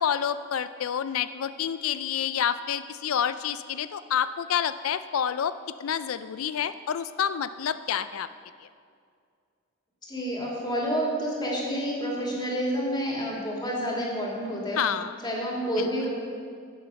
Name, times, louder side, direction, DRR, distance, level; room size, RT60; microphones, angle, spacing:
voice 1, 0.0-8.3 14.8-15.1 15.8-15.9, left 8 dB, 80° left, 13 dB, 0.4 m, -28 dB
voice 2, 10.0-14.8 15.2-16.1, equal, 20° left, -3 dB, 2.6 m, -29 dB
15.0 x 6.9 x 6.4 m, 2.2 s
head